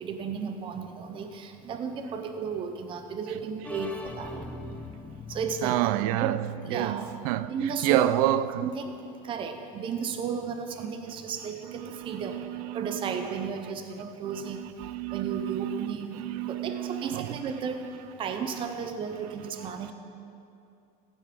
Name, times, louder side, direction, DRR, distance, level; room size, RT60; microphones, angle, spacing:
voice 1, 0.0-4.3 5.3-5.9 6.2-7.1 7.4-8.2 8.6-9.0 9.2-12.4 12.7-14.6 15.1-16.2 16.5-17.8 18.2-19.9, right 6 dB, 25° right, 0.8 m, -33 dB
sound 1, 3.6-7.4, left 2 dB, 5° left, 0.6 m, -43 dB
voice 2, 5.6-8.7 11.7-13.5 14.2-17.4 18.6-18.7 19.6-19.7, right 15 dB, 70° right, 0.5 m, -30 dB
15.0 x 9.2 x 5.1 m
supercardioid pair, 150°, 20 cm